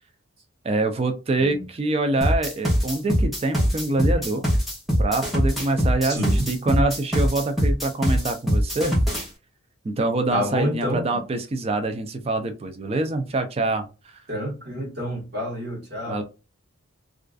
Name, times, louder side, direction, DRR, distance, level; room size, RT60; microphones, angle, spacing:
voice 1, 0.6-4.5 5.0-8.9 9.8-13.9 16.1-16.2, right 2 dB, 30° right, 0.3 m, -25 dB
sound 1, 2.2-9.3, equal, ahead, 0.8 m, -22 dB
voice 2, 6.0-6.6 10.3-11.2 14.3-16.2, equal, 50° right, 1.1 m, -28 dB
2.4 x 2.3 x 2.3 m
head